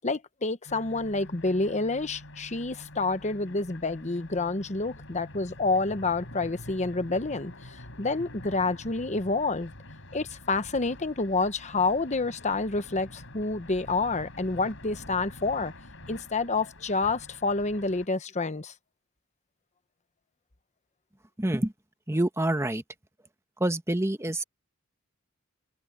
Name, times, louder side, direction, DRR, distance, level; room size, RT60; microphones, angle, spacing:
voice 1, 0.0-7.5 8.0-9.7 10.1-15.7 16.1-18.7, left 3 dB, 35° left, 1.0 m, -28 dB
sound 1, 0.7-18.1, left 1 dB, 65° left, 7.5 m, -46 dB
voice 2, 21.4-21.7 22.1-22.8 23.6-24.4, right 1 dB, 15° right, 1.2 m, -26 dB
head